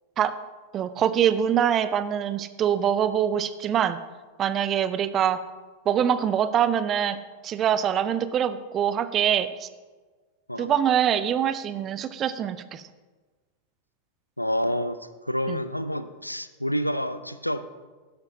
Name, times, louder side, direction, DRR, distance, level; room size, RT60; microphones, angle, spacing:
voice 1, 0.7-4.0 4.4-5.4 5.9-7.2 7.4-9.7 10.6-12.8 15.5-15.6, right 9 dB, 30° right, 14 dB, 0.5 m, -24 dB
voice 2, 14.4-17.6, equal, 90° left, 12 dB, 0.4 m, -28 dB
12.0 x 11.0 x 2.7 m, 1.3 s
figure-of-eight pair, 90°, 0 cm